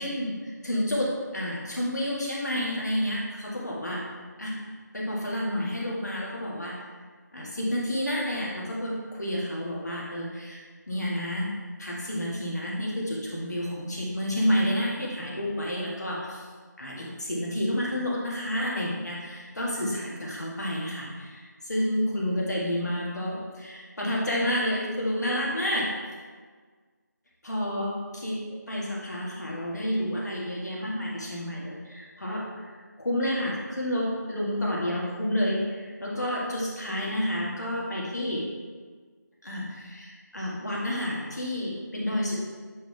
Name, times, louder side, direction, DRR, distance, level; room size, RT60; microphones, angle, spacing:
voice 1, 0.0-4.1 4.4-4.6 4.9-6.8 7.3-10.6 10.9-11.5 11.8-16.5 16.8-25.9 27.4-28.3 28.7-38.5 39.4-42.3, equal, 60° left, -4 dB, 1.7 m, -30 dB
7.6 x 3.8 x 3.3 m, 1.5 s
figure-of-eight pair, 165°, 10 cm